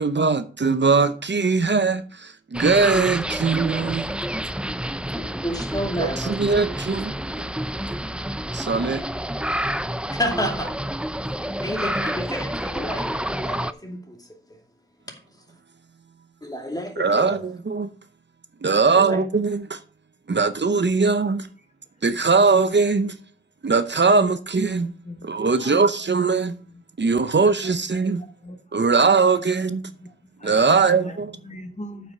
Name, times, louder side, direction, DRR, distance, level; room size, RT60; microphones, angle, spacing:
voice 1, 0.0-4.2 6.0-8.0 8.5-9.1 17.0-17.9 18.6-19.8 20.3-21.5 22.0-23.1 23.6-24.9 25.2-26.5 27.0-28.2 28.7-29.9 30.4-31.3, right 4 dB, 60° right, 0.8 m, -21 dB
sound 1, 2.5-13.7, equal, 5° right, 0.5 m, -29 dB
voice 2, 5.2-6.3 10.2-10.8 11.4-14.3 15.1-15.2 16.4-17.4 18.8-19.2, equal, 20° left, 2.5 m, -30 dB
voice 3, 25.0-25.9 26.7-26.8 28.2-29.4 30.0-31.2 31.4-32.1, left 1 dB, 35° left, 1.1 m, -42 dB
8.8 x 5.8 x 5.5 m
wide cardioid pair, 65°, 20 cm